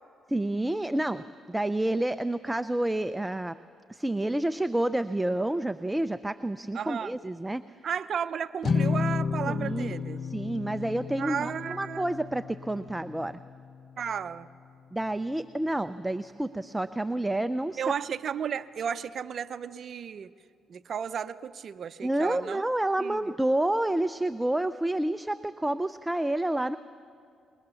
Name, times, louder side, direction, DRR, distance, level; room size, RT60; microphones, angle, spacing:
voice 1, 0.3-1.2 1.5-3.6 3.9-7.6 9.5-10.0 10.2-13.4 14.9-17.8 22.0-26.8, right 1 dB, 10° right, 12 dB, 0.5 m, -29 dB
voice 2, 6.7-7.1 7.8-10.2 11.2-12.1 14.0-14.5 17.8-20.3 20.7-22.6 23.0-23.3, right 7 dB, 55° right, 13 dB, 0.6 m, -33 dB
sound 1, 8.6-15.1, left 5 dB, 45° left, 0.9 m, -33 dB
26.5 x 21.5 x 6.9 m, 2.4 s
cardioid pair, 90°, 0 cm